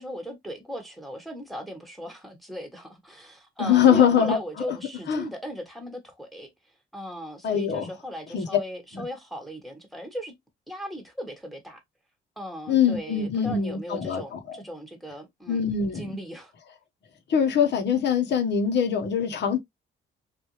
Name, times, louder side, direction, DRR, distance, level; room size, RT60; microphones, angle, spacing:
voice 1, 0.0-6.5 6.9-10.3 10.7-11.8 12.4-15.6 15.9-16.5, equal, ahead, 1.2 m, -38 dB
voice 2, 3.6-4.4 5.1-5.3 7.4-7.9 8.3-8.5 8.9-9.0 12.7-14.4 15.5-16.0 17.3-19.6, left 7 dB, 60° left, 1.0 m, -22 dB
3.3 x 2.6 x 3.0 m
cardioid pair, 90°, 20 cm